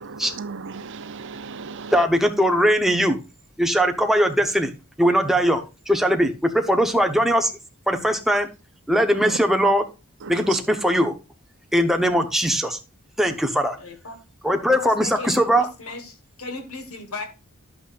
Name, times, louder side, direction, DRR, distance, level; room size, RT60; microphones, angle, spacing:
voice 1, 0.0-2.0 9.1-9.4 10.2-10.6, right 5 dB, 60° right, 0.6 m, -35 dB
voice 2, 1.9-3.2 3.6-4.7 5.0-7.5 7.9-8.5 8.9-9.8 10.3-11.1 11.7-12.8 13.2-13.8 14.4-15.7, equal, ahead, 0.9 m, -20 dB
voice 3, 13.8-14.2 14.8-17.2, left 3 dB, 90° left, 1.7 m, -36 dB
10.5 x 8.0 x 2.5 m
head